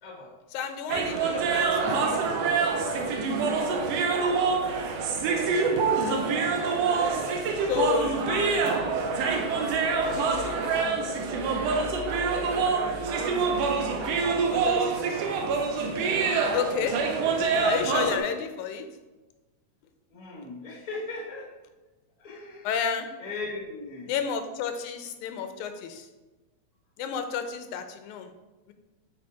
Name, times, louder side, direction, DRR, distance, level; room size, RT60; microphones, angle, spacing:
voice 1, 0.0-0.3 1.3-1.5 3.6-3.9 5.2-5.8 7.1-7.5 13.4-14.5 20.1-21.5 22.2-22.7 23.2-24.1, left 2 dB, 35° left, -2 dB, 0.6 m, -40 dB
voice 2, 0.5-2.2 7.6-8.9 10.1-10.6 12.2-13.4 14.5-14.9 16.5-17.0 17.6-18.9 22.6-23.1 24.1-26.1 27.0-28.3 28.7-28.8, left 7 dB, 90° left, 8 dB, 2.1 m, -32 dB
sound 1, 0.9-18.2, right 4 dB, 70° right, 1.7 m, -26 dB
7.8 x 3.4 x 4.8 m, 1.2 s
omnidirectional pair, 3.3 m